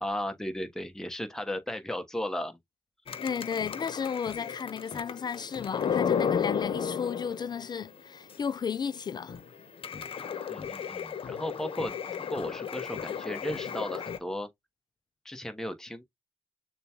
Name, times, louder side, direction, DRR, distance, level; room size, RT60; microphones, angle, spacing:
voice 1, 0.0-2.6 10.2-11.9 12.2-14.5 15.2-16.0, left 1 dB, 5° left, 1.0 m, -35 dB
sound 1, 3.1-7.8 8.3-8.4 8.7-8.8 9.1-14.2, left 7 dB, 55° left, 0.9 m, -33 dB
voice 2, 3.2-9.4, left 7 dB, 40° left, 0.3 m, -34 dB
6.7 x 2.3 x 2.9 m
cardioid pair, 65°, 11 cm